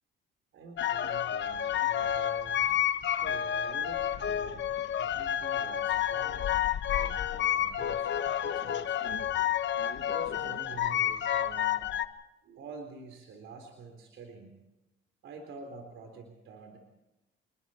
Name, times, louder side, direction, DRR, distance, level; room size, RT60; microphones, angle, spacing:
voice 1, 0.5-2.7 3.2-6.4 6.9-8.1 8.4-9.0 10.0-11.9 12.4-14.6 15.2-16.8, right 4 dB, 75° right, 4 dB, 3.8 m, -47 dB
sound 1, 0.8-12.1, left 10 dB, 65° left, 1.1 m, -30 dB
28.0 x 21.5 x 4.4 m, 0.96 s
cardioid pair, 90°, 20 cm